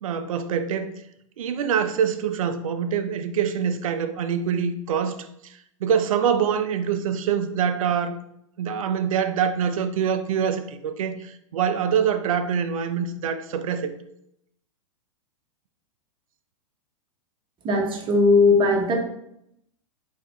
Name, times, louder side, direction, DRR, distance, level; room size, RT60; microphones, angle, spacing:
voice 1, 0.0-0.9 1.4-5.2 5.4-5.5 5.8-8.2 8.6-13.9, right 7 dB, 70° right, 0.6 m, -25 dB
voice 2, 17.6-18.9, left 3 dB, 30° right, 1.1 m, -18 dB
4.7 x 3.0 x 3.8 m
hypercardioid pair, 110°, 18 cm